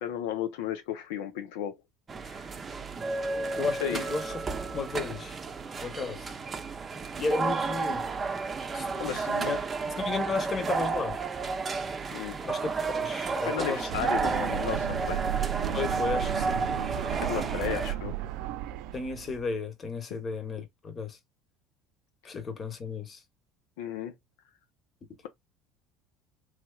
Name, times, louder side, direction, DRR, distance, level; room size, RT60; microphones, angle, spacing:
voice 1, 0.0-1.8 2.2-2.4 3.8-4.0 9.0-9.3 12.1-12.4 13.4-15.2 17.1-18.1 23.8-24.1, left 10 dB, 85° left, 0.7 m, -34 dB
sound 1, 2.1-17.9, right 4 dB, 30° right, 0.7 m, -32 dB
voice 2, 3.6-4.4 4.7-5.4 5.8-6.4 7.2-8.1 8.7-9.6 10.0-11.2 12.4-14.1 15.7-16.6 18.9-21.2 22.2-23.2, left 4 dB, 30° left, 1.1 m, -34 dB
sound 2, 13.9-19.5, right 12 dB, 70° right, 0.4 m, -33 dB
3.3 x 3.0 x 2.3 m
supercardioid pair, 100°, 0 cm